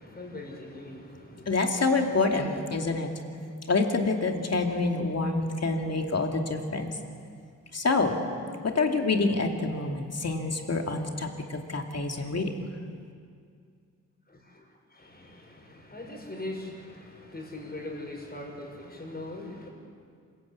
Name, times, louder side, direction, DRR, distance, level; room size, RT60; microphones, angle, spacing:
voice 1, 0.0-1.5 14.3-19.7, left 2 dB, 30° left, 0 dB, 6.6 m, -41 dB
voice 2, 1.5-3.1 3.7-7.0 7.7-8.1 8.6-12.5, left 3 dB, 50° left, 3 dB, 2.7 m, -27 dB
26.5 x 17.0 x 8.5 m, 2.2 s
wide cardioid pair, 85°, 32 cm